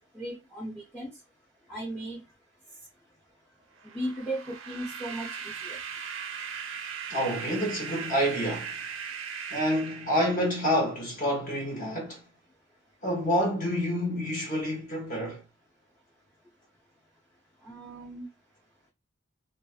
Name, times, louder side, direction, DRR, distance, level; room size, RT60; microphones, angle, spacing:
voice 1, 0.1-1.1 1.7-2.2 3.9-5.8 17.6-18.3, right 1 dB, 5° left, 0.5 m, -36 dB
sound 1, 3.8-10.8, right 7 dB, 70° right, 0.4 m, -39 dB
voice 2, 7.1-8.8 9.5-12.2 13.0-15.4, equal, 40° left, 0.9 m, -28 dB
2.4 x 2.4 x 2.4 m
head